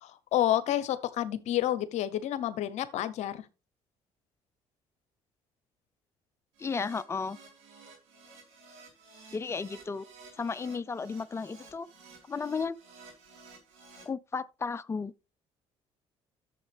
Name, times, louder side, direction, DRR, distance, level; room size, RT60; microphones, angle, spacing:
voice 1, 0.0-3.4, left 12 dB, 70° left, 0.9 m, -29 dB
Keyboard (musical), 6.5-14.0, right 4 dB, 85° right, 4.5 m, -54 dB
voice 2, 6.6-7.4 9.3-10.0 10.4-11.9 12.3-12.7 14.1-15.1, left 5 dB, 20° left, 0.5 m, -34 dB
11.0 x 7.3 x 3.5 m
supercardioid pair, 75°, 12 cm